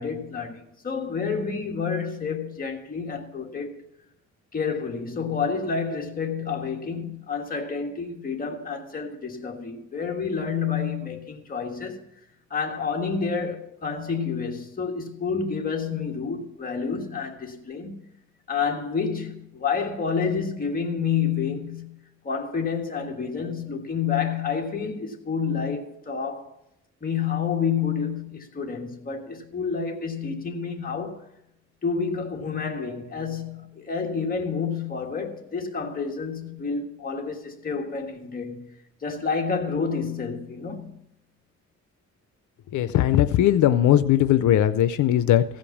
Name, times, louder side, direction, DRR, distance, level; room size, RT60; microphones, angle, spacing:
voice 1, 0.0-3.8 4.5-12.0 12.5-18.0 18.5-22.0 22.2-26.5 27.0-31.2 31.8-38.7 39.0-41.0, left 5 dB, 30° left, 1.6 m, -29 dB
voice 2, 42.7-45.4, left 12 dB, 90° left, 0.6 m, -19 dB
15.5 x 5.2 x 7.2 m
cardioid pair, 130°, 29 cm